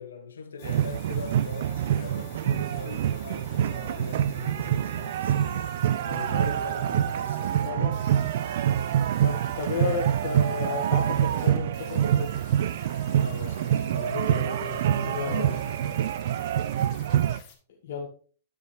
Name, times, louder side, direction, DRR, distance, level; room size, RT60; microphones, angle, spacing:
voice 1, 0.0-5.7 6.0-7.8 13.2-16.1, left 4 dB, 70° left, 1.2 m, -40 dB
sound 1, 0.6-17.6, left 7 dB, 40° left, 1.9 m, -51 dB
sound 2, 0.6-17.4, right 10 dB, 55° right, 0.4 m, -26 dB
voice 2, 7.6-8.2 9.2-12.3 15.0-15.5 17.8-18.1, left 5 dB, 55° left, 1.4 m, -33 dB
9.9 x 7.3 x 3.2 m
figure-of-eight pair, 105°, 0 cm